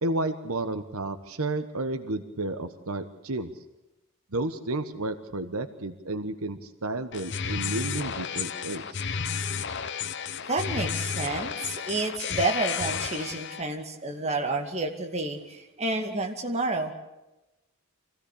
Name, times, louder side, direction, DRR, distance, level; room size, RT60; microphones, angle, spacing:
voice 1, 0.0-3.5 4.3-9.0, right 2 dB, 75° right, 9 dB, 1.3 m, -32 dB
sound 1, 7.1-13.6, left 6 dB, 50° left, 0.9 m, -32 dB
voice 2, 10.5-16.9, right 2 dB, 30° right, 3 dB, 2.4 m, -30 dB
25.5 x 16.5 x 8.5 m, 0.97 s
head